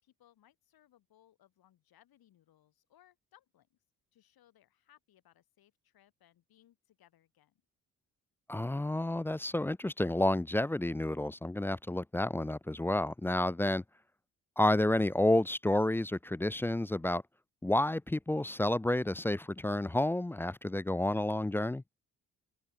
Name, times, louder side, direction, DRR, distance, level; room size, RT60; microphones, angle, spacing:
voice 1, 0.0-3.8 4.1-7.6, left 12 dB, 60° left, 6.2 m, -66 dB
voice 2, 8.5-13.8 14.6-17.2 17.6-21.8, left 1 dB, 5° left, 0.4 m, -30 dB
open air
hypercardioid pair, 50°, 40 cm